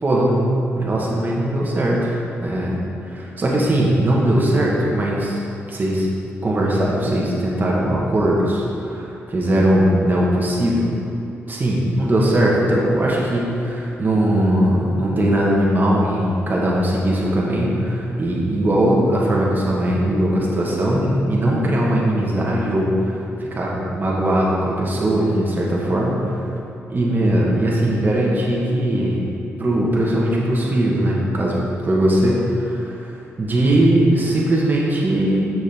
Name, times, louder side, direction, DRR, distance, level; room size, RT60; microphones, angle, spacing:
voice 1, 0.0-2.8 3.1-5.4 5.7-6.1 6.4-10.9 11.5-26.4 26.9-29.3 29.6-31.6 31.8-35.5, right 1 dB, 40° right, -4 dB, 1.4 m, -19 dB
6.3 x 6.0 x 3.6 m, 2.7 s
cardioid pair, 70°, 5 cm